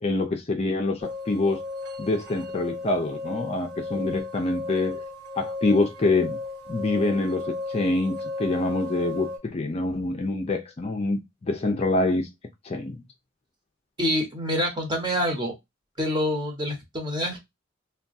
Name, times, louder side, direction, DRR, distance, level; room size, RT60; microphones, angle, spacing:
voice 1, 0.0-1.6 2.0-5.0 5.4-6.4 6.7-12.3 12.6-13.0, left 2 dB, 30° left, 0.4 m, -26 dB
sound 1, 1.0-9.4, left 3 dB, 55° right, 1.3 m, -35 dB
voice 2, 14.0-15.5 16.0-17.4, equal, 20° right, 1.0 m, -26 dB
3.4 x 2.2 x 2.5 m
head